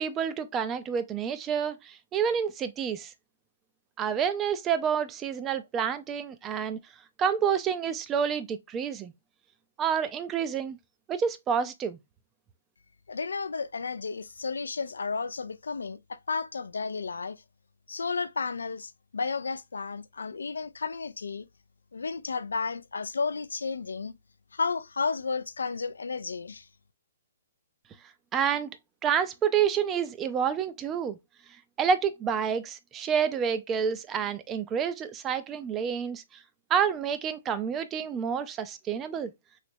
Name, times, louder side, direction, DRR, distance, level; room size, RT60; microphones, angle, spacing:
voice 1, 0.0-3.1 4.0-6.8 7.2-9.1 9.8-10.8 11.1-12.0 28.3-28.7 29.0-31.2 31.8-36.2 36.7-39.3, right 7 dB, 20° right, 0.4 m, -28 dB
voice 2, 13.1-17.4 17.9-21.5 21.9-24.2 24.5-26.7, left 4 dB, 80° left, 0.3 m, -32 dB
3.2 x 2.9 x 2.6 m
hypercardioid pair, 130°, 0 cm